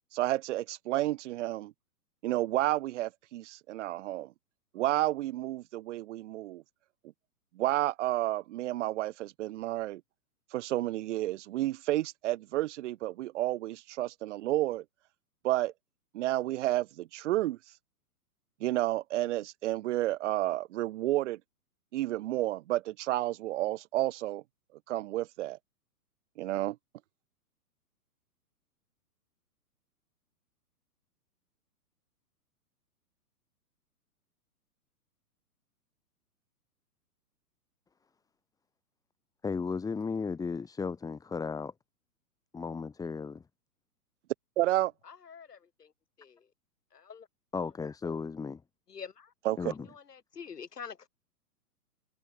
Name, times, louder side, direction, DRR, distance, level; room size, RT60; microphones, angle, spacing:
voice 1, 0.1-1.7 2.2-4.3 4.7-6.6 7.6-10.0 10.5-14.8 15.4-15.7 16.1-17.6 18.6-21.4 21.9-24.4 24.9-25.6 26.4-26.8 44.6-44.9 49.5-49.6, right 15 dB, 50° right, 1.8 m, -31 dB
voice 2, 39.4-41.7 42.5-43.5 47.5-48.6 49.6-49.9, left 5 dB, 10° left, 1.5 m, -35 dB
voice 3, 45.0-45.9 46.2-46.5 46.9-47.3 48.9-49.3 49.9-51.1, left 6 dB, 85° left, 6.4 m, -46 dB
hypercardioid pair, 130°, 46 cm